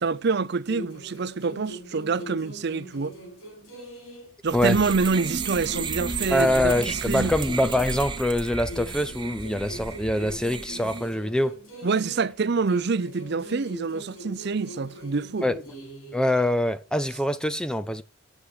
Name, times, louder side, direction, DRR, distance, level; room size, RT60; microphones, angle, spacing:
voice 1, 0.0-3.1 4.4-7.3 11.8-15.5, right 4 dB, 50° right, 0.5 m, -26 dB
sound 1, 0.7-4.4 4.7-8.3 8.7-12.4 12.7-16.3, left 1 dB, 75° left, 4.9 m, -42 dB
sound 2, 4.5-11.1, right 4 dB, 20° right, 1.0 m, -33 dB
voice 2, 6.3-11.5 15.4-15.5 16.1-18.0, left 1 dB, 5° left, 0.4 m, -24 dB
13.0 x 7.4 x 4.9 m
head